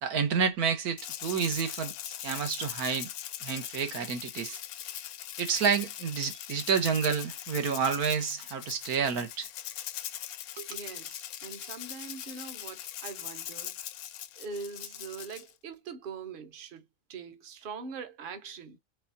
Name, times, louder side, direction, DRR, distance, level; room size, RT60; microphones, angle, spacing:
voice 1, 0.0-3.1 3.4-4.6 5.4-9.5 10.6-10.8, right 6 dB, 80° right, 1.5 m, -29 dB
Rattle (instrument), 1.0-15.5, left 11 dB, 75° left, 1.0 m, -41 dB
voice 2, 10.7-13.8 14.4-16.8 17.1-18.8, right 5 dB, 45° right, 0.9 m, -42 dB
4.8 x 3.5 x 2.6 m
omnidirectional pair, 1.6 m